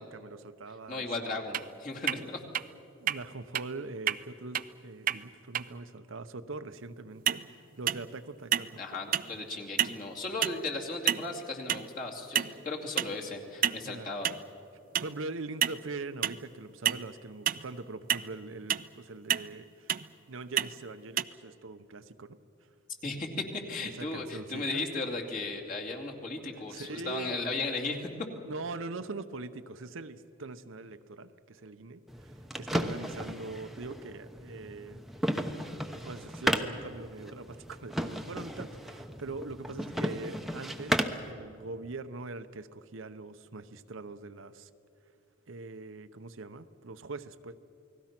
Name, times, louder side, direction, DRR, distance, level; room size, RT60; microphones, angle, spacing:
voice 1, 0.0-1.6 3.0-9.0 13.8-14.1 15.0-20.0 20.3-22.4 23.8-24.8 26.7-27.4 28.5-35.0 36.0-44.7 45.5-47.5, right 3 dB, 75° right, 10 dB, 0.8 m, -42 dB
voice 2, 0.9-2.4 8.8-14.3 23.0-28.1, left 3 dB, 40° left, 0 dB, 2.6 m, -36 dB
sound 1, 1.5-1.6 2.1-2.2 2.5-2.6 3.1-3.2 3.5-3.6 4.1-4.2 4.5-4.6 5.1-5.2 5.5-5.6 7.3-7.5 7.9-8.2 8.5-8.8 9.1-9.3 9.8-10.0 10.4-10.6 11.1-11.3 11.7-11.9 12.4-12.6 13.0-13.1 13.6-13.8 14.2-14.4 14.9-15.1 15.6-15.8 16.2-16.4 16.9-17.0 17.5-17.7 18.1-18.2 18.7-18.9 19.3-19.5 19.9-20.1 20.6-20.7 21.2-21.3, right 10 dB, 40° right, 0.4 m, -29 dB
sound 2, 32.1-41.3, equal, ahead, 0.9 m, -35 dB
29.0 x 19.5 x 6.0 m, 2.8 s
head